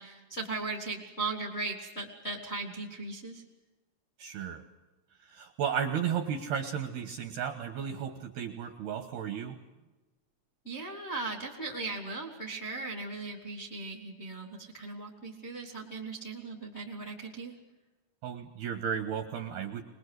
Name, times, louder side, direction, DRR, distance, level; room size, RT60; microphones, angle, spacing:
voice 1, 0.0-3.4 10.6-17.6, right 3 dB, 30° left, 2 dB, 1.2 m, -38 dB
voice 2, 4.2-4.6 5.3-9.6 18.2-19.8, right 8 dB, 70° right, 6 dB, 2.5 m, -34 dB
24.0 x 21.0 x 8.1 m, 1.1 s
omnidirectional pair, 6.0 m